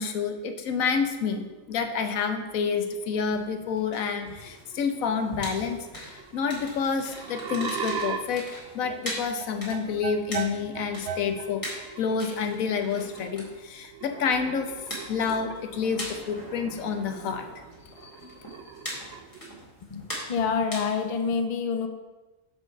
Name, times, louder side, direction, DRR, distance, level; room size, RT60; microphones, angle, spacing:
voice 1, 0.0-8.5 8.7-11.6 12.0-17.6 18.0-18.3, left 6 dB, 85° left, 6 dB, 1.2 m, -29 dB
sound 1, 1.4-1.6 2.3-2.6 3.0-3.2 4.2-4.3 4.5-5.3 5.6-5.7 6.1-17.2 17.4-19.6, right 6 dB, 60° right, 0.7 m, -39 dB
sound 2, 3.1-21.2, equal, 15° left, 1.9 m, -42 dB
voice 2, 19.9-21.9, left 5 dB, 45° left, 7 dB, 0.5 m, -27 dB
5.6 x 5.0 x 6.4 m, 1.1 s
omnidirectional pair, 1.4 m